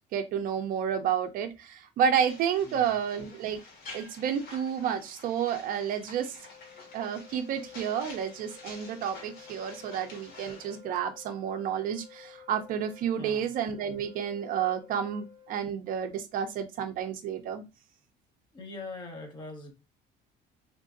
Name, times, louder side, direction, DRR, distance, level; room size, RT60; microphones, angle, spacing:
voice 1, 0.1-3.6 3.9-6.4 6.9-17.6, right 8 dB, 50° right, 0.5 m, -30 dB
sound 1, 2.3-10.8, left 3 dB, 60° left, 1.5 m, -49 dB
voice 2, 2.6-3.0 9.9-10.0 13.2-13.5 18.5-19.7, left 2 dB, 25° left, 1.0 m, -42 dB
Wind instrument woodwind instrument, 5.9-15.9, left 7 dB, 25° right, 2.0 m, -53 dB
3.6 x 3.2 x 2.5 m
cardioid pair, 165°, 18 cm